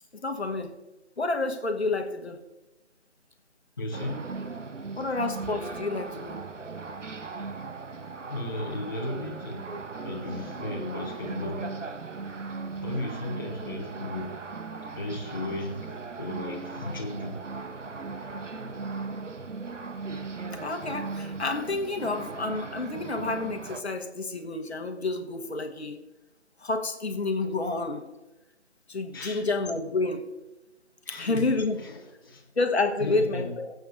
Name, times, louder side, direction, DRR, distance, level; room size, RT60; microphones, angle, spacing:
voice 1, 0.1-0.8 1.2-2.4 5.0-6.4 20.5-26.0 26.6-28.1 28.9-30.3 31.1-31.8 32.6-33.7, left 3 dB, 60° left, 5 dB, 1.3 m, -29 dB
voice 2, 3.8-4.3 7.6-7.7 8.3-9.7 10.0-11.8 12.8-14.4 15.0-17.4 29.1-29.5 31.0-32.4 33.0-33.5, left 2 dB, 20° left, -4 dB, 1.0 m, -35 dB
sound 1, 3.9-23.8, right 4 dB, 85° right, 1.0 m, -38 dB
23.5 x 7.9 x 2.6 m, 1.1 s
figure-of-eight pair, 165°, 36 cm